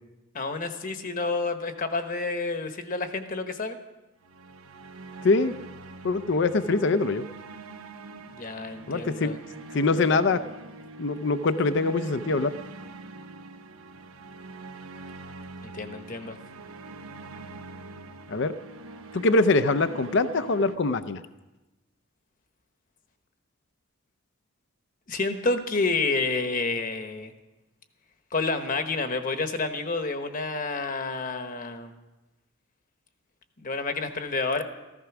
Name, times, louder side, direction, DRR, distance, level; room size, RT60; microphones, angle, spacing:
voice 1, 0.3-3.8 8.3-9.4 15.6-16.4 25.1-27.3 28.3-31.9 33.6-34.6, left 3 dB, 40° left, 7 dB, 1.1 m, -29 dB
sound 1, 4.2-20.8, right 2 dB, 85° right, 0.9 m, -43 dB
voice 2, 5.2-5.5 6.0-7.2 8.9-9.3 9.7-10.4 11.0-12.5 18.3-18.5 19.1-21.2, left 3 dB, 55° left, 12 dB, 0.5 m, -23 dB
15.0 x 14.5 x 6.0 m, 1.1 s
head